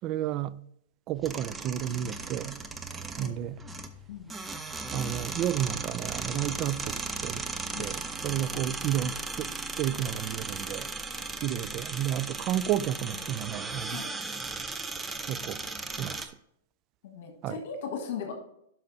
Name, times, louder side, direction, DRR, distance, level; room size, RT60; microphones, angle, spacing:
voice 1, 0.0-0.6 1.1-2.6 3.2-3.6 4.9-7.4 7.8-9.5 9.8-10.9 11.4-14.0 15.3-15.6 16.0-16.3 17.4-17.6, right 11 dB, 40° right, 0.3 m, -31 dB
sound 1, 1.2-16.3, right 3 dB, 15° right, 0.7 m, -37 dB
voice 2, 17.0-18.3, left 6 dB, 65° left, 1.4 m, -38 dB
11.5 x 5.7 x 2.7 m
hypercardioid pair, 115°, 0 cm